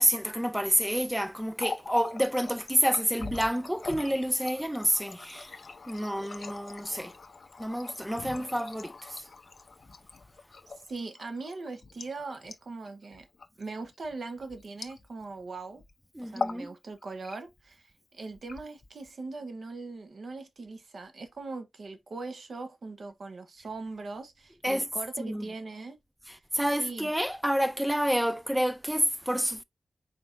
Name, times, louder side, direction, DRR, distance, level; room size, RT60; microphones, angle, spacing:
voice 1, 0.0-5.5 5.9-7.1 7.6-9.2 16.2-16.7 24.6-24.9 25.2-25.4 26.5-29.6, equal, 5° right, 0.3 m, -28 dB
Water tap faucet, 1.4-15.4 15.7-15.9 16.3-16.7 17.0-17.7 18.3-19.1, left 4 dB, 50° left, 0.6 m, -42 dB
voice 2, 10.9-13.3 13.6-15.8 16.2-26.0 26.8-27.1, right 3 dB, 55° right, 0.8 m, -40 dB
5.0 x 4.2 x 2.5 m
wide cardioid pair, 165°, 0 cm